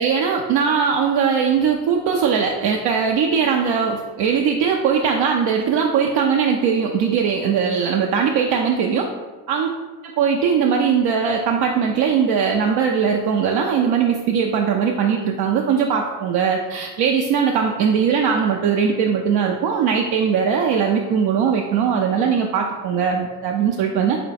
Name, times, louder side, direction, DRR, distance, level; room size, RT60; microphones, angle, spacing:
voice 1, 0.0-9.1 9.5-9.7 10.0-24.2, right 6 dB, 60° right, 1 dB, 0.5 m, -20 dB
3.7 x 2.2 x 4.0 m, 1.3 s
hypercardioid pair, 55°, 47 cm